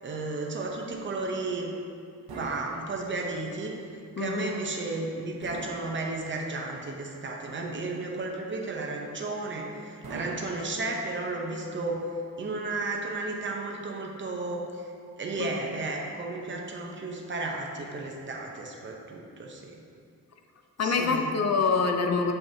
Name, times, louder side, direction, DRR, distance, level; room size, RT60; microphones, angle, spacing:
voice 1, 0.0-1.7 2.3-3.7 4.2-12.0 12.4-14.9 15.2-19.8 20.8-21.3, right 3 dB, 30° right, 0 dB, 0.7 m, -33 dB
sound 1, 2.3-3.5 5.4-6.6 10.0-11.3, right 3 dB, 80° right, 0.9 m, -43 dB
voice 2, 4.2-4.5 15.4-15.5 20.8-22.3, left 4 dB, 45° left, 4 dB, 0.5 m, -25 dB
7.1 x 5.6 x 2.7 m, 2.4 s
wide cardioid pair, 130°, 36 cm